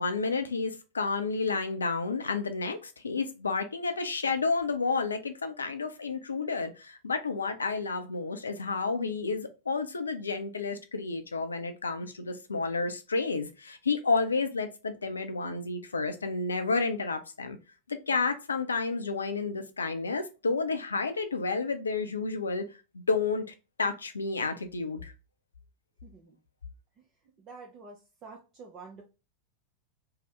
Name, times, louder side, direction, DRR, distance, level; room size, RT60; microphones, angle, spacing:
voice 1, 0.0-17.6 17.9-22.7 22.9-23.4 23.8-25.1, left 4 dB, 75° left, 0.4 m, -30 dB
voice 2, 26.0-26.4 27.4-29.0, right 4 dB, 30° right, 0.5 m, -48 dB
2.7 x 2.0 x 3.2 m
figure-of-eight pair, 90°, 0 cm